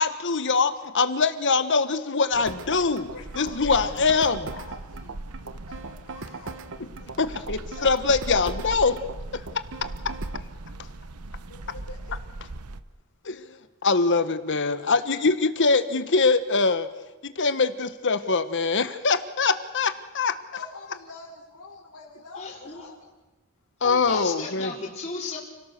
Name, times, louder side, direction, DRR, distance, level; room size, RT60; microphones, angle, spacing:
voice 1, 0.0-3.1 3.4-4.5 7.2-8.9 9.3-9.4 13.3-13.4 13.8-16.9 17.2-20.4 23.8-24.7, left 4 dB, 55° left, 11 dB, 1.3 m, -23 dB
sound 1, 2.3-12.8, right 2 dB, 90° right, 1.0 m, -39 dB
sound 2, 2.5-10.5, right 3 dB, 60° right, 1.1 m, -39 dB
voice 2, 3.1-3.5 3.9-5.2 5.4-6.6 7.8-8.4 11.3-12.2 20.5-23.0, left 4 dB, 85° left, -4 dB, 3.8 m, -45 dB
voice 3, 22.3-22.9 23.8-25.4, left 4 dB, 30° left, -4 dB, 4.2 m, -34 dB
29.5 x 18.0 x 6.8 m, 1.2 s
head